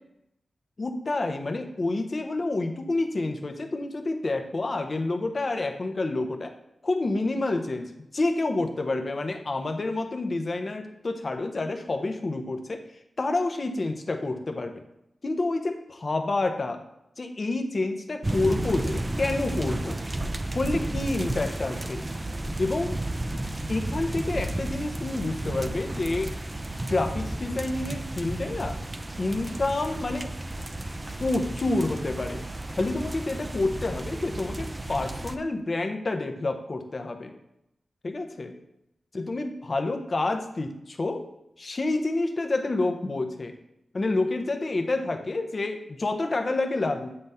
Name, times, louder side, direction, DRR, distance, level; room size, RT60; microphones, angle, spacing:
voice 1, 0.8-6.5 6.8-12.8 13.2-14.8 15.2-16.8 17.2-20.0 20.5-22.0 22.6-23.0 23.7-26.4 26.9-28.8 29.2-30.3 31.2-32.4 32.7-37.3 38.0-38.5 39.1-41.2 41.6-43.5 43.9-47.2, left 2 dB, 35° left, 6 dB, 0.7 m, -28 dB
sound 1, 18.2-35.4, right 1 dB, 20° right, 0.4 m, -33 dB
7.8 x 3.5 x 5.5 m, 0.82 s
wide cardioid pair, 150°, 0 cm